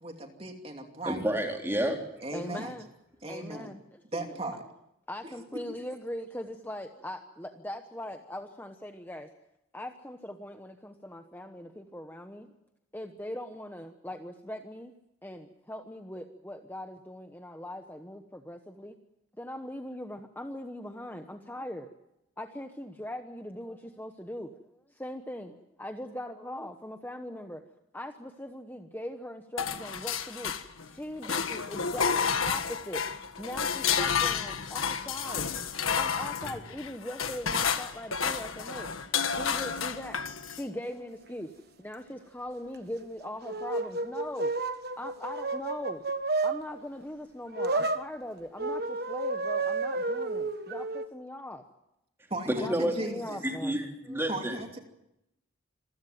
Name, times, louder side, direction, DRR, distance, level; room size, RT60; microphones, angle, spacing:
voice 1, 0.0-1.2 2.2-2.8 3.2-3.7 4.1-4.6 5.2-5.3 52.3-53.4 54.3-54.8, right 2 dB, 30° right, 4 dB, 2.8 m, -37 dB
voice 2, 1.1-2.0 52.7-52.9 53.4-54.5, right 1 dB, 10° right, 1 dB, 3.7 m, -29 dB
voice 3, 2.3-2.9 3.3-4.4 5.1-9.3 9.7-12.5 12.9-14.9 15.2-19.0 19.4-21.9 22.4-27.6 27.9-30.5 30.8-32.2 32.4-33.0 33.4-35.5 35.9-38.9 39.3-40.2 40.5-41.5 41.8-44.5 45.0-46.0 46.4-51.6 52.6-54.3, left 1 dB, 10° left, 5 dB, 1.0 m, -40 dB
sound 1, 29.6-30.9 31.2-40.7, left 6 dB, 90° left, 1.6 m, -31 dB
sound 2, 43.0-46.6 47.5-48.1 48.6-51.0, right 3 dB, 50° right, 1.4 m, -31 dB
26.5 x 16.0 x 9.2 m, 0.85 s
head